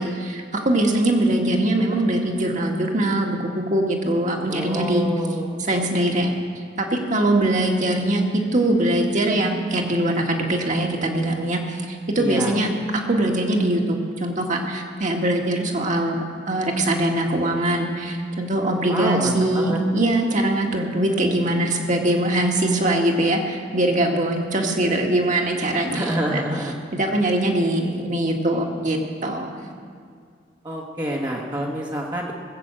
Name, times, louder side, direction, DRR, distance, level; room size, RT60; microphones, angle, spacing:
voice 1, 0.0-5.1 5.7-6.3 6.8-26.0 26.3-26.4 26.9-29.6, right 1 dB, 45° right, 1 dB, 1.9 m, -22 dB
voice 2, 4.5-5.5 12.2-12.5 18.8-19.8 25.9-26.7 30.6-32.3, equal, 25° right, -3 dB, 1.3 m, -27 dB
19.0 x 8.0 x 7.6 m, 2.2 s
head